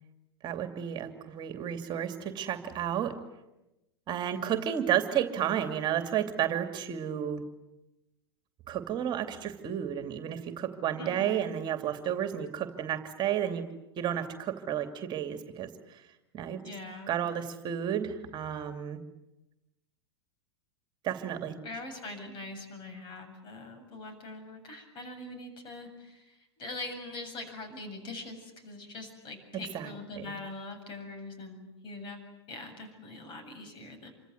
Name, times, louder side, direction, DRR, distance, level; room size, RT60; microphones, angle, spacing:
voice 1, 0.4-3.2 4.1-7.4 8.7-13.7 14.0-16.1 16.3-16.6 17.1-19.0 21.0-21.6 29.7-30.3, right 10 dB, 35° right, 7 dB, 2.8 m, -32 dB
voice 2, 11.0-11.6 16.6-17.1 21.6-32.2 32.5-34.1, left 2 dB, 35° left, 7 dB, 7.8 m, -43 dB
28.0 x 25.5 x 8.1 m, 0.94 s
figure-of-eight pair, 95°, 14 cm